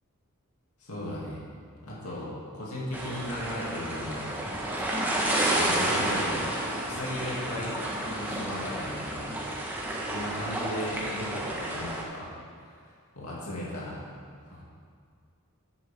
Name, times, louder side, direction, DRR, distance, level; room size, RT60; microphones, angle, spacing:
voice 1, 0.8-1.4 1.8-4.3 5.4-6.5 6.8-9.3 10.1-12.3 12.6-12.8 13.1-14.0 14.5-14.6, left 1 dB, 75° left, -6 dB, 2.7 m, -36 dB
sound 1, 2.9-12.0, right 1 dB, 10° right, 1.4 m, -30 dB
13.5 x 8.4 x 3.7 m, 2.2 s
head